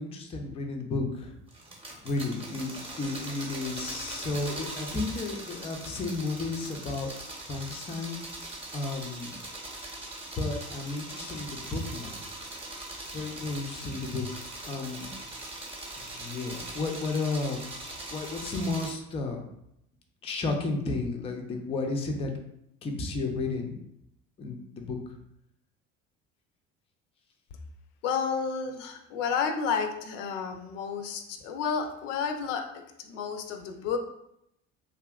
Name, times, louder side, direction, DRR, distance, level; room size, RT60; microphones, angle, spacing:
voice 1, 0.0-1.4 2.0-7.1 7.5-8.3 8.7-9.4 10.4-12.2 13.1-14.3 14.6-15.2 16.1-17.6 18.1-19.5 20.2-22.3 22.8-23.8 24.4-25.0, left 3 dB, 15° left, 3 dB, 0.4 m, -33 dB
sound 1, 1.5-18.9, right 2 dB, 15° right, 0.7 m, -41 dB
voice 2, 28.0-34.0, left 6 dB, 70° left, 6 dB, 0.5 m, -31 dB
2.7 x 2.4 x 2.3 m, 0.78 s
figure-of-eight pair, 60°, 39 cm